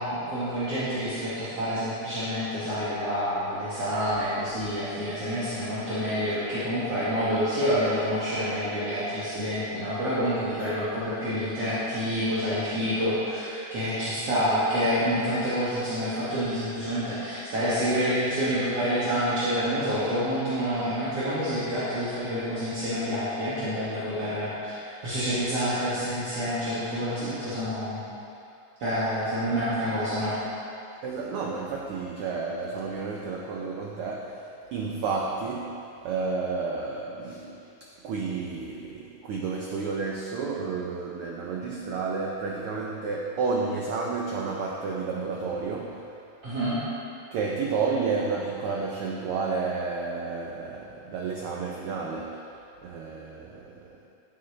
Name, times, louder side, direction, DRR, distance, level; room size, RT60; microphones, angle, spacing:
voice 1, 0.0-28.0 28.8-30.4 46.4-46.8, equal, 60° right, -13 dB, 2.9 m, -28 dB
voice 2, 31.0-46.1 47.3-52.4 52.8-54.0, right 4 dB, 80° right, -1 dB, 1.2 m, -31 dB
13.5 x 8.5 x 3.2 m, 2.6 s
omnidirectional pair, 3.3 m